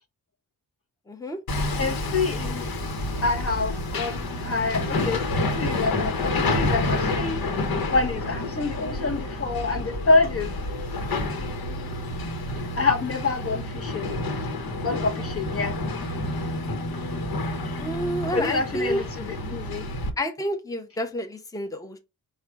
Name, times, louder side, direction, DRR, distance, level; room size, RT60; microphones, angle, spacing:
voice 1, 1.1-1.4 17.8-19.0 20.2-22.0, equal, 10° left, 0.8 m, -29 dB
Hammer, 1.5-20.1, left 2 dB, 80° left, 1.1 m, -29 dB
voice 2, 1.8-2.7 3.2-5.2 5.5-7.4 7.9-10.5 12.8-14.1 14.8-15.7 18.3-19.8, left 3 dB, 40° left, 0.9 m, -26 dB
4.8 x 2.3 x 4.6 m
wide cardioid pair, 105°, 35 cm